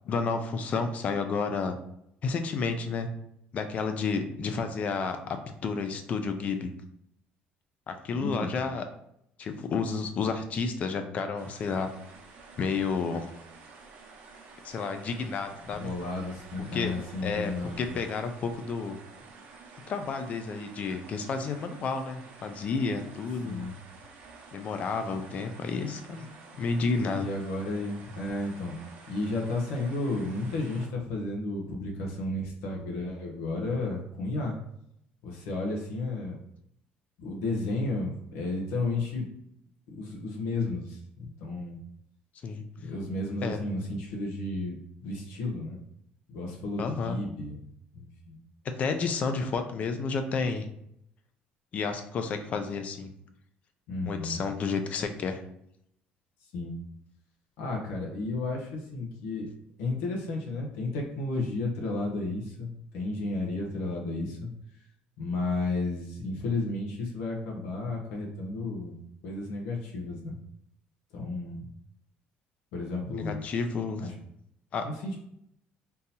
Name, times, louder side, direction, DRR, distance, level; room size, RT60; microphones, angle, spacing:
voice 1, 0.0-1.8 2.2-3.1 3.5-6.7 7.9-8.8 9.4-11.9 12.6-13.3 14.6-15.9 16.7-17.5 17.8-19.0 19.9-23.6 24.5-26.3 26.6-27.3 42.4-42.6 43.4-43.6 46.8-47.2 48.8-50.7 51.7-53.1 54.1-55.4 73.1-74.0 74.7-74.9, left 4 dB, 40° left, 7 dB, 0.4 m, -31 dB
voice 2, 8.1-8.5 15.6-17.9 23.5-23.7 27.2-28.8 29.1-34.6 35.2-36.4 37.2-39.3 39.9-41.8 42.8-45.8 46.3-47.6 47.9-48.4 53.9-54.4 56.5-56.8 57.6-59.5 59.8-64.5 65.2-69.0 69.2-70.4 71.1-71.7 72.7-73.4 74.0-74.2 74.8-75.2, left 2 dB, 90° left, -1 dB, 0.8 m, -33 dB
sound 1, 11.4-30.9, right 4 dB, 80° right, 0.8 m, -50 dB
3.7 x 2.7 x 2.8 m, 0.74 s
cardioid pair, 140°, 4 cm